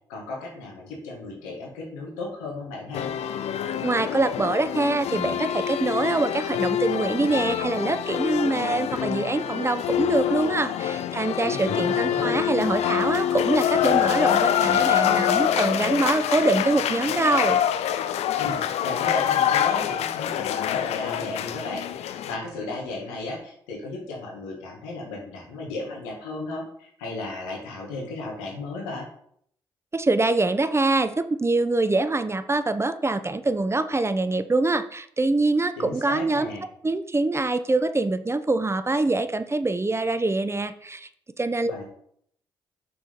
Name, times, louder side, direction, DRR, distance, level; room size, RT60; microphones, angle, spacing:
voice 1, 0.1-3.1 11.4-12.4 18.4-29.1 35.8-36.6 41.7-41.8, left 2 dB, 90° left, -1 dB, 1.8 m, -35 dB
sound 1, 2.9-22.4, left 10 dB, 70° left, 0.5 m, -25 dB
voice 2, 3.8-17.6 29.9-36.5 36.8-41.1 41.4-41.7, right 2 dB, 25° right, 12 dB, 0.7 m, -24 dB
6.0 x 4.8 x 5.2 m, 0.67 s
hypercardioid pair, 45°, 11 cm